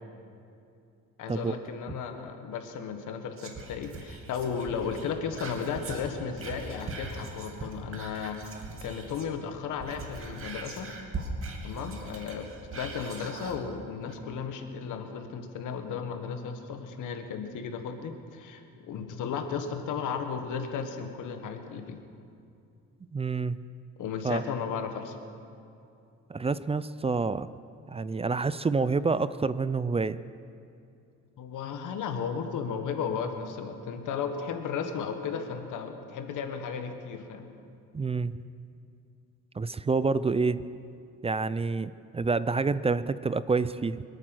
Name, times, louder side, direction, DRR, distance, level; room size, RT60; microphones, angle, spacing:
voice 1, 1.2-10.9 11.6-22.0 24.0-25.2 31.4-37.5, left 6 dB, 85° left, 6 dB, 1.5 m, -35 dB
Whispering, 3.4-9.4 9.7-13.6 14.1-14.2, right 3 dB, 45° right, 2.5 m, -40 dB
voice 2, 23.1-23.6 24.2-24.4 26.3-27.5 27.9-30.2 37.9-38.4 39.6-40.6 41.2-44.0, right 4 dB, 20° right, 16 dB, 0.4 m, -28 dB
25.0 x 9.0 x 6.2 m, 2.6 s
cardioid pair, 90°, 30 cm